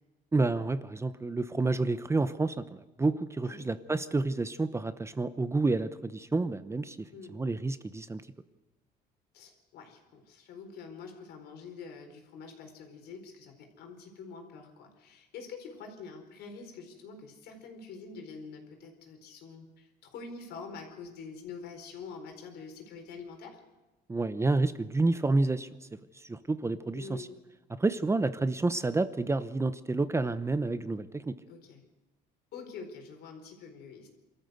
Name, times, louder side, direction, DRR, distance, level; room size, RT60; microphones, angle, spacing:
voice 1, 0.3-7.0 7.3-8.2 24.1-25.7 26.1-27.3 27.8-31.4, right 3 dB, 15° right, 13 dB, 0.9 m, -29 dB
voice 2, 9.3-23.6 26.9-27.3 31.5-31.8 32.5-34.1, left 5 dB, 75° left, 5 dB, 4.4 m, -46 dB
25.0 x 13.5 x 8.1 m, 1.1 s
cardioid pair, 110°, 17 cm